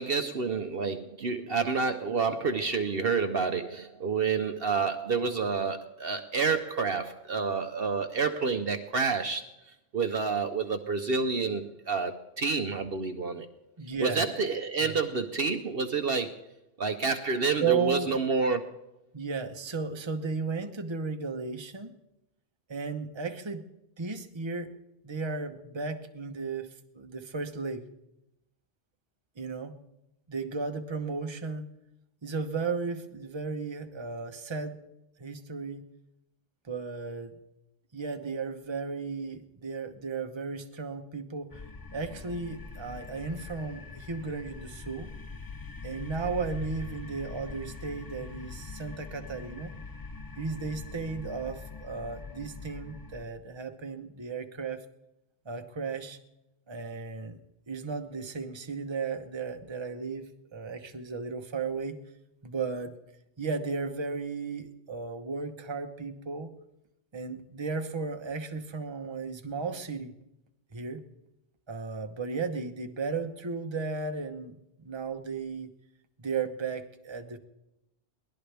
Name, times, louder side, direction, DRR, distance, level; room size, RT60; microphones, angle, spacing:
voice 1, 0.0-13.5 14.0-16.4 16.8-18.7, right 4 dB, 55° right, 6 dB, 1.0 m, -29 dB
voice 2, 13.8-14.2 14.8-14.9 17.6-18.2 19.1-21.9 22.7-23.6 24.0-24.7 25.0-27.9 29.4-29.7 30.3-31.7 32.2-34.8 35.2-35.9 36.6-37.3 37.9-41.6 41.9-45.1 45.8-49.7 50.4-54.8 55.4-56.2 56.7-57.4 57.7-61.9 62.4-63.0 63.4-66.5 67.1-70.1 70.7-71.0 71.7-74.6 74.8-75.7 76.2-77.4, right 4 dB, 25° right, 6 dB, 1.0 m, -34 dB
sound 1, 41.5-53.3, left 4 dB, 35° left, 0.3 m, -43 dB
22.5 x 17.5 x 3.4 m, 0.86 s
omnidirectional pair, 1.3 m